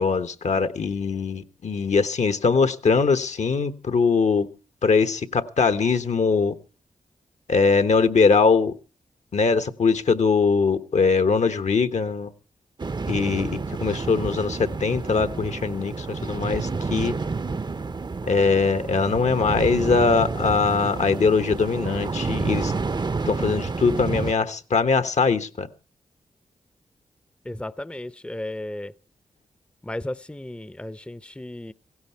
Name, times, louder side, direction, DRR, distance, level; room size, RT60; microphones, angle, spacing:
voice 1, 0.0-4.5 4.8-6.5 7.5-8.7 9.3-12.3 13.1-17.1 18.3-22.7 23.3-25.7, left 4 dB, 60° left, 1.2 m, -21 dB
sound 1, 12.8-24.3, right 4 dB, 35° right, 0.7 m, -29 dB
voice 2, 27.4-28.9 29.8-31.7, left 1 dB, 10° left, 0.7 m, -34 dB
16.5 x 16.0 x 4.4 m
supercardioid pair, 40°, 13 cm